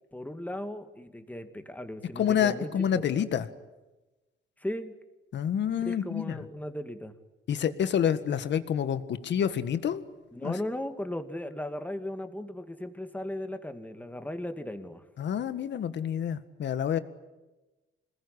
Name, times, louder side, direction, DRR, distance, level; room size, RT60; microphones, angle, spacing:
voice 1, 0.1-3.2 4.6-4.9 5.8-7.1 10.3-15.0, left 1 dB, 10° left, 8 dB, 2.4 m, -37 dB
voice 2, 2.2-3.5 5.3-6.3 7.5-10.0 10.4-10.5 15.2-17.0, left 8 dB, 65° left, 11 dB, 1.8 m, -28 dB
26.5 x 20.5 x 10.0 m, 1.1 s
cardioid pair, 90°, 20 cm